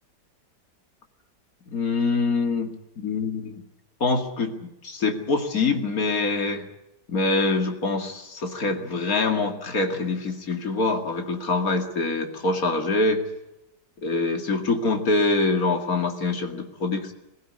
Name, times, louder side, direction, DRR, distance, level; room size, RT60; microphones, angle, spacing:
voice 1, 1.7-3.5 4.0-6.7 7.1-13.2 14.0-17.1, left 3 dB, 55° left, 5 dB, 2.7 m, -25 dB
22.5 x 15.5 x 9.8 m, 0.90 s
omnidirectional pair, 1.8 m